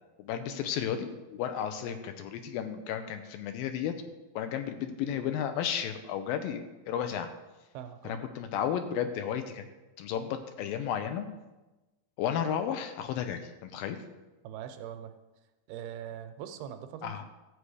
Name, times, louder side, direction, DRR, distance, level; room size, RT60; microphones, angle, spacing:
voice 1, 0.2-4.0 4.4-7.3 8.0-9.6 10.0-11.3 12.2-14.0 17.0-17.2, left 9 dB, 80° left, 8 dB, 2.4 m, -33 dB
voice 2, 7.7-8.2 14.4-15.1 15.7-17.2, right 9 dB, 85° right, 8 dB, 2.7 m, -42 dB
13.0 x 8.2 x 4.9 m, 1.1 s
omnidirectional pair, 4.4 m